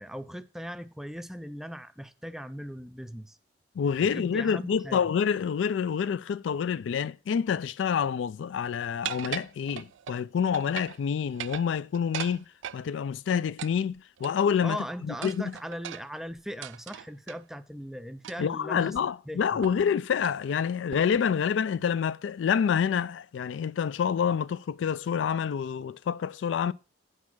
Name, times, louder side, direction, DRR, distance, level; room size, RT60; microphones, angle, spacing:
voice 1, 0.0-3.4 4.0-5.0 14.6-19.0 19.3-19.6, equal, ahead, 0.4 m, -39 dB
voice 2, 3.8-12.4 12.7-15.5 18.4-26.7, left 7 dB, 80° left, 0.3 m, -27 dB
sound 1, 9.0-10.2 10.5-11.0 11.3-12.8 13.6-14.6 15.2-17.4 18.2-18.6 18.9-19.0 19.6-19.9 20.2-20.4 20.9-21.3, right 11 dB, 80° right, 0.3 m, -39 dB
8.3 x 4.7 x 6.1 m
head